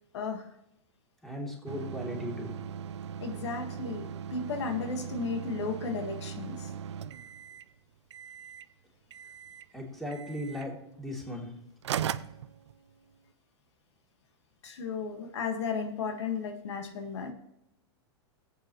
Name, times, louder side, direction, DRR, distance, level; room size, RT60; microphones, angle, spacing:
voice 1, 0.1-0.5 3.2-6.7 14.6-17.3, left 5 dB, 85° left, 5 dB, 1.7 m, -34 dB
voice 2, 1.2-2.6 9.7-11.5, equal, ahead, -2 dB, 2.9 m, -37 dB
sound 1, 1.7-7.7 8.1-8.7 9.1-9.7 10.1-10.7 11.5-11.6 11.8-13.2, right 8 dB, 90° right, 0.5 m, -39 dB
16.5 x 8.3 x 3.1 m, 0.85 s
hypercardioid pair, 130°, 14 cm